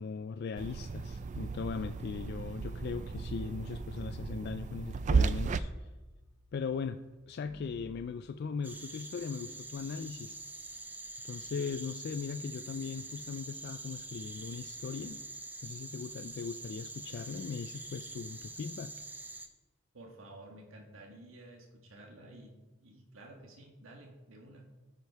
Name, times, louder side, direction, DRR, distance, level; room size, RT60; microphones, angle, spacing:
voice 1, 0.0-5.9 6.5-10.4 11.2-15.2 15.6-18.9, left 5 dB, 55° left, 9 dB, 0.3 m, -39 dB
sound 1, 0.6-5.6, right 4 dB, 35° right, 0.3 m, -34 dB
sound 2, 1.1-8.1, equal, 5° left, 1.1 m, -57 dB
sound 3, 8.6-19.5, right 2 dB, 10° right, 0.7 m, -45 dB
voice 2, 19.9-22.5 22.8-24.7, right 1 dB, 80° right, 1 dB, 1.6 m, -52 dB
13.5 x 5.2 x 4.6 m, 1.1 s
head